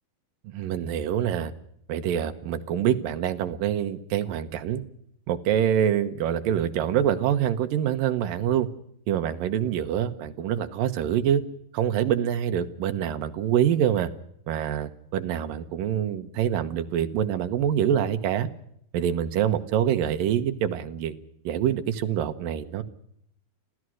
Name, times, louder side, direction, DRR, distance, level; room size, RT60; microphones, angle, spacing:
voice 1, 0.4-1.5 1.9-4.8 5.3-8.7 9.1-11.4 11.7-14.1 14.5-18.5 18.9-21.1 21.4-22.8, right 10 dB, 70° right, 9 dB, 2.6 m, -25 dB
27.0 x 16.0 x 6.3 m, 0.72 s
omnidirectional pair, 4.4 m